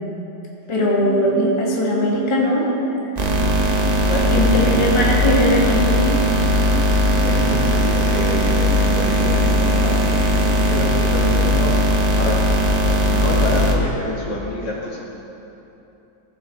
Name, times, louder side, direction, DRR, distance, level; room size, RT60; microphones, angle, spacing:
voice 1, 0.7-2.7 4.2-6.2, left 1 dB, 15° left, -4 dB, 1.4 m, -20 dB
sound 1, 0.8-10.8, right 3 dB, 15° right, 1.5 m, -31 dB
sound 2, 3.1-13.7, equal, 60° right, 0.4 m, -18 dB
voice 2, 3.7-4.9 7.2-11.8 12.2-12.4 13.1-15.0, left 1 dB, 65° left, -4 dB, 2.4 m, -27 dB
15.5 x 7.8 x 3.9 m, 3.0 s
omnidirectional pair, 2.1 m